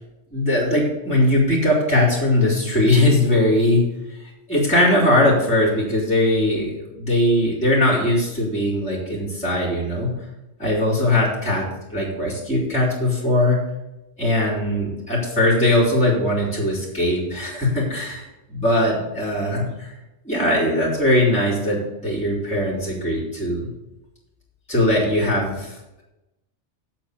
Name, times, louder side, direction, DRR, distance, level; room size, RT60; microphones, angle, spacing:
voice 1, 0.3-3.8 4.5-10.1 10.6-13.6 14.2-19.9 20.2-23.7 24.7-26.0, left 1 dB, 5° left, -8 dB, 3.3 m, -20 dB
7.9 x 7.5 x 6.7 m, 0.95 s
omnidirectional pair, 1.3 m